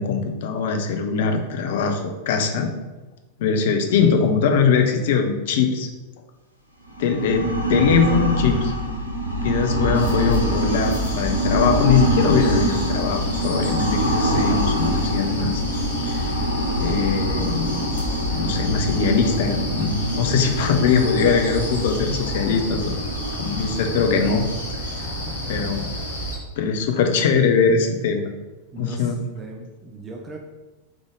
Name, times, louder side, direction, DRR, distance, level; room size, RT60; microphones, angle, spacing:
voice 1, 0.0-2.7 3.4-5.9 7.0-8.7 9.4-15.6 16.1-16.2 16.8-17.9 18.3-23.0 23.4-24.5 25.0-25.1 25.5-25.9 26.6-28.3 28.8-29.2, left 5 dB, 55° left, 5 dB, 0.5 m, -21 dB
sound 1, 6.9-25.6, equal, 85° right, 0.6 m, -25 dB
sound 2, 9.9-26.4, equal, 70° left, 1.3 m, -31 dB
voice 2, 25.3-25.9 28.7-30.4, right 2 dB, 20° right, 1 dB, 0.5 m, -39 dB
3.6 x 3.5 x 3.6 m, 1.2 s
figure-of-eight pair, 90°, 0 cm